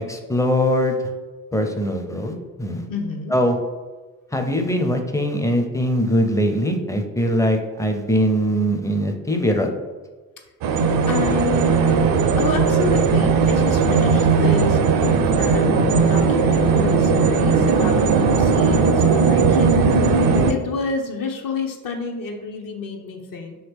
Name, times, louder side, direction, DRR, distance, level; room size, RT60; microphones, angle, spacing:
voice 1, 0.1-1.0 1.5-2.3 2.6-2.8 3.3-3.6 4.3-9.7, equal, 10° left, 4 dB, 0.5 m, -21 dB
voice 2, 2.9-3.4 11.1-12.0 12.4-20.0 20.5-23.6, left 4 dB, 55° left, 3 dB, 0.7 m, -29 dB
sound 1, 10.6-20.5, right 5 dB, 55° right, 0.5 m, -17 dB
2.8 x 2.8 x 3.5 m, 1.3 s
hypercardioid pair, 45°, 41 cm